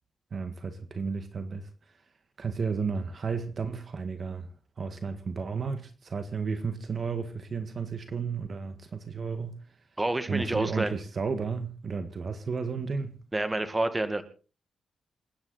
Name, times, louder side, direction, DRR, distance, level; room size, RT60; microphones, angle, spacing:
voice 1, 0.3-1.7 2.4-4.5 4.8-9.6 10.3-13.2, right 5 dB, 40° right, 1.7 m, -33 dB
voice 2, 10.0-11.0 13.3-14.2, right 2 dB, 15° right, 2.1 m, -28 dB
28.5 x 9.7 x 4.1 m
cardioid pair, 125°, 0 cm